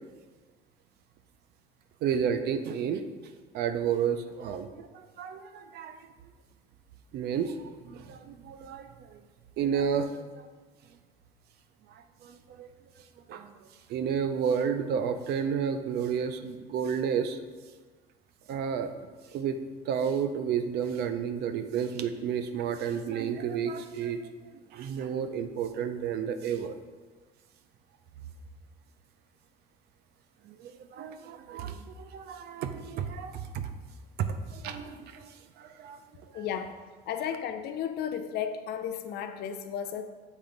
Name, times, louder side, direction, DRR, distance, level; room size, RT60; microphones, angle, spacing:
voice 1, 2.0-3.0 3.5-6.0 7.1-9.2 9.6-10.2 11.9-12.7 13.3-13.5 13.9-17.4 18.5-18.9 19.3-19.6 19.8-24.3 24.7-26.8 30.4-33.7 34.2-36.0 36.3-36.5, right 7 dB, 75° right, 0.6 m, -31 dB
voice 2, 36.3-36.8 37.1-40.0, left 8 dB, 70° left, 0.6 m, -34 dB
7.2 x 4.2 x 3.9 m
cardioid pair, 110°, 17 cm